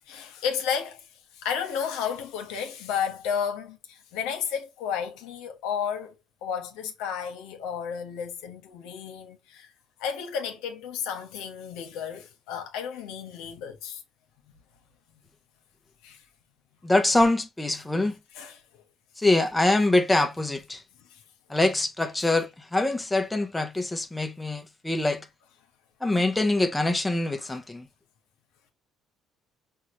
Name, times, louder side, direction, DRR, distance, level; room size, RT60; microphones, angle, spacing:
voice 1, 0.1-1.1 1.3-6.1 6.4-9.7 10.0-14.0 16.0-16.2 18.3-18.8 21.1-21.2 27.4-27.6, left 7 dB, 90° left, 1.0 m, -32 dB
voice 2, 16.8-18.2 19.2-20.8 21.5-25.3 26.0-27.9, left 2 dB, 10° left, 0.7 m, -24 dB
5.5 x 2.4 x 3.0 m
cardioid pair, 100°, 0 cm